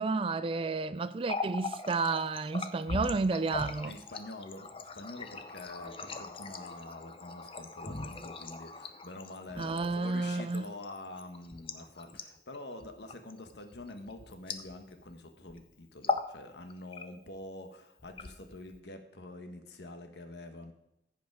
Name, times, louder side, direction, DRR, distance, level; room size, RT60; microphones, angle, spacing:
voice 1, 0.0-3.9 9.6-10.7, right 3 dB, 30° right, 0.3 m, -31 dB
Water tap faucet, 1.1-15.1 15.4-15.6 15.9-16.4 16.7-17.4 18.0-18.8, left 4 dB, 30° left, 0.6 m, -40 dB
voice 2, 3.8-20.7, left 2 dB, 80° left, 1.3 m, -46 dB
15.0 x 5.2 x 4.7 m
head